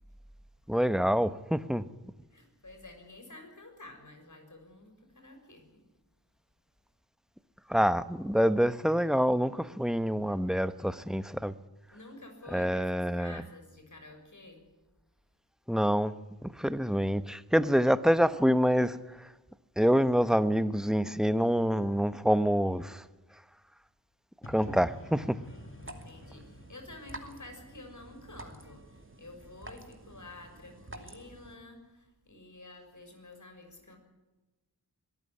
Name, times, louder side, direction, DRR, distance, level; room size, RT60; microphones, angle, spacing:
voice 1, 0.7-1.9 7.7-11.5 12.5-13.4 15.7-16.1 16.4-19.3 19.8-23.0 24.4-25.4, equal, ahead, 1.0 m, -26 dB
voice 2, 2.3-5.7 11.9-14.7 25.8-34.0, left 2 dB, 50° left, 6.5 m, -50 dB
sound 1, 24.4-28.3, left 2 dB, 35° left, 1.7 m, -49 dB
sound 2, 25.4-31.6, right 2 dB, 30° right, 2.7 m, -49 dB
23.0 x 14.0 x 10.0 m
wide cardioid pair, 60°, 38 cm